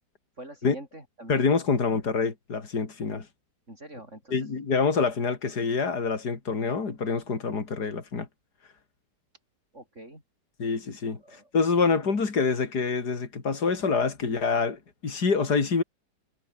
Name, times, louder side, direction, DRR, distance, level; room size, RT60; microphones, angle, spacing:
voice 1, 0.4-1.5 3.7-4.5 5.2-5.3 9.7-10.2 11.2-11.5 11.8-12.1, right 1 dB, 40° right, 8.3 m, -45 dB
voice 2, 1.3-3.3 4.3-8.3 10.6-15.8, left 4 dB, 60° left, 3.6 m, -26 dB
omnidirectional pair, 1.9 m